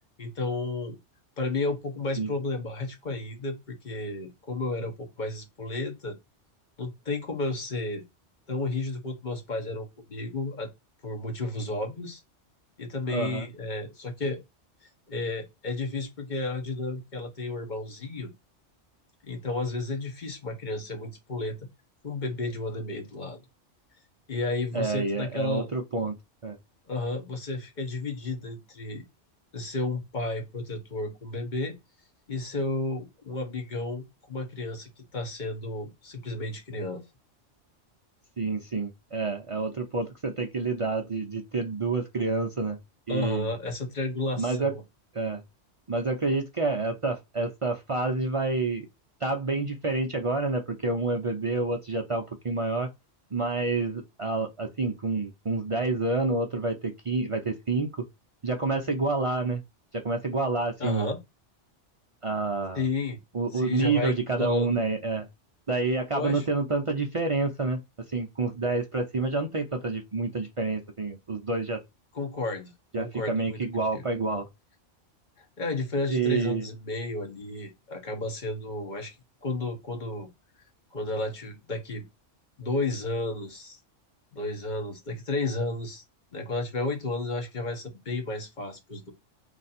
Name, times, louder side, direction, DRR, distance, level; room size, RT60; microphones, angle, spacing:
voice 1, 0.2-1.0 1.4-6.2 6.8-8.0 8.5-10.7 11.0-12.2 12.8-14.4 15.1-18.3 19.2-21.6 22.0-23.4 24.3-25.7 26.9-29.0 29.5-31.7 32.3-37.0 43.1-44.8 60.8-61.2 62.7-63.2 63.5-64.7 66.1-66.5 72.1-73.6 73.9-74.0 75.4-79.1 79.4-80.3 80.9-82.0 82.6-83.8 84.3-86.0 86.3-89.1, left 2 dB, 40° left, 1.2 m, -32 dB
voice 2, 13.1-13.5 24.7-26.1 26.4-26.6 38.4-42.8 43.1-43.5 44.4-44.7 45.1-45.4 45.9-48.9 49.2-52.9 53.3-58.1 58.4-59.6 59.9-61.1 62.2-62.8 63.3-65.3 65.7-67.8 68.1-71.8 72.9-74.5 76.1-76.7, right 3 dB, 45° right, 0.4 m, -28 dB
3.3 x 2.6 x 4.1 m
omnidirectional pair, 1.2 m